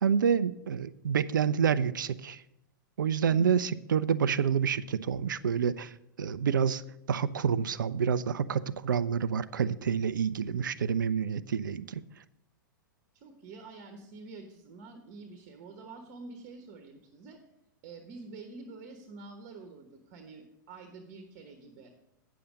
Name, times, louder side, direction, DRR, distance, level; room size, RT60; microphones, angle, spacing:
voice 1, 0.0-2.4 3.0-5.9 6.2-6.8 7.1-12.0, right 7 dB, 70° right, 16 dB, 0.5 m, -28 dB
voice 2, 3.3-3.7 13.1-17.4 17.8-21.9, right 3 dB, 40° right, 6 dB, 1.1 m, -47 dB
9.4 x 7.0 x 5.0 m, 0.86 s
figure-of-eight pair, 100°, 11 cm